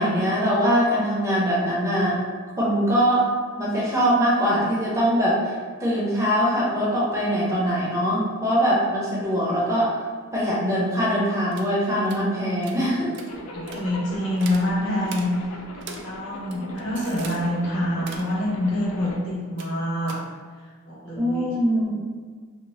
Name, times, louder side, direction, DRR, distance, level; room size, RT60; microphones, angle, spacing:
voice 1, 0.0-2.2 2.6-3.2 3.6-5.5 5.8-9.9 10.3-13.1 21.2-22.0, equal, 15° right, -7 dB, 0.6 m, -22 dB
sound 1, 11.5-11.7 12.0-12.2 12.6-12.8 13.1-13.3 13.7-13.8 14.4-14.7 15.0-15.3 15.8-16.0 16.4-17.4 17.9-18.3 19.6-19.8 20.1-20.2, right 5 dB, 55° right, 0.3 m, -40 dB
Zipper (clothing), 13.3-19.2, left 1 dB, 85° left, 0.4 m, -39 dB
voice 2, 13.5-15.3 15.8-20.2 20.9-21.5, left 1 dB, 55° left, -7 dB, 0.9 m, -26 dB
2.7 x 2.1 x 3.0 m, 1.6 s
head